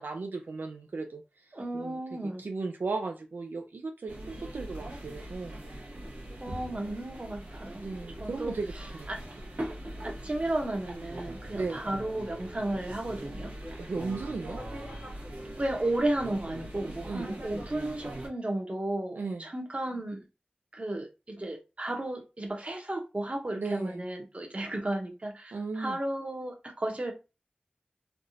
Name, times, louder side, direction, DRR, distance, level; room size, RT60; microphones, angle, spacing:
voice 1, 0.0-5.6 7.8-9.2 11.5-11.9 13.8-14.6 17.1-17.3 19.2-19.4 23.5-24.0 25.5-26.0, right 3 dB, 90° right, 0.4 m, -36 dB
voice 2, 1.5-2.4 6.4-7.9 8.2-8.5 9.1-9.2 10.0-13.5 15.6-20.2 20.7-27.1, right 1 dB, 40° right, 1.0 m, -33 dB
sound 1, 4.1-18.3, right 1 dB, 70° right, 1.3 m, -41 dB
3.4 x 2.4 x 2.7 m
wide cardioid pair, 50°, 3 cm